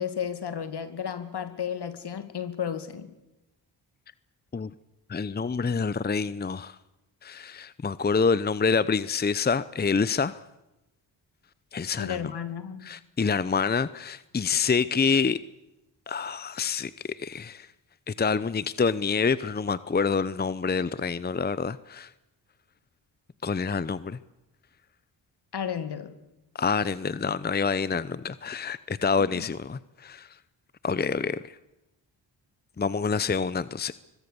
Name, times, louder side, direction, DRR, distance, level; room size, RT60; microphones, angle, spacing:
voice 1, 0.0-3.1 12.0-12.9 25.5-26.1 29.3-29.5, left 8 dB, 60° left, 2.4 m, -33 dB
voice 2, 5.1-6.8 7.2-10.4 11.7-12.3 12.8-15.4 16.1-17.7 18.1-22.1 23.4-24.2 26.6-30.3 30.8-31.5 32.8-33.9, left 5 dB, 20° left, 0.8 m, -27 dB
24.0 x 22.0 x 7.0 m
cardioid pair, 55°, 45 cm